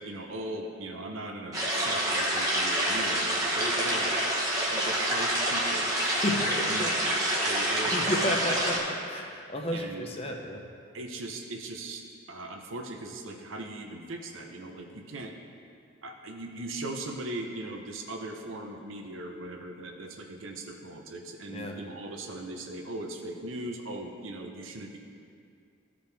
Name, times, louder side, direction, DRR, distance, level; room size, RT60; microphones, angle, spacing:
voice 1, 0.0-4.2 4.7-5.9 6.4-7.2 7.4-8.3 8.7-9.0 9.7-10.1 10.9-12.0 12.3-15.3 16.0-25.0, right 2 dB, 70° right, 3 dB, 0.8 m, -39 dB
sound 1, 1.5-8.8, right 1 dB, 15° right, 1.1 m, -27 dB
voice 2, 6.0-6.9 7.8-10.7 21.5-21.8, left 1 dB, 30° left, 2 dB, 0.7 m, -32 dB
14.5 x 5.1 x 3.4 m, 2.3 s
head